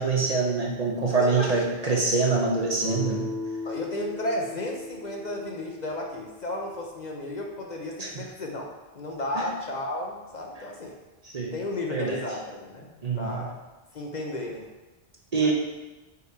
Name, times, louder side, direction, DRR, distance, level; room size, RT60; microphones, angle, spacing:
voice 1, 0.0-3.3 8.0-8.3 9.4-9.5 11.2-11.5 11.9-12.2 13.0-13.5 15.3-15.5, right 4 dB, 40° right, -1 dB, 0.8 m, -25 dB
voice 2, 1.2-1.6 1.9-2.1 3.6-8.7 8.9-11.0 11.5-13.6 13.9-14.7 15.4-15.5, left 1 dB, 50° left, 0 dB, 0.7 m, -33 dB
Guitar, 2.8-7.6, left 2 dB, 10° left, 2.0 m, -37 dB
5.5 x 3.9 x 4.6 m, 1.1 s
omnidirectional pair, 1.1 m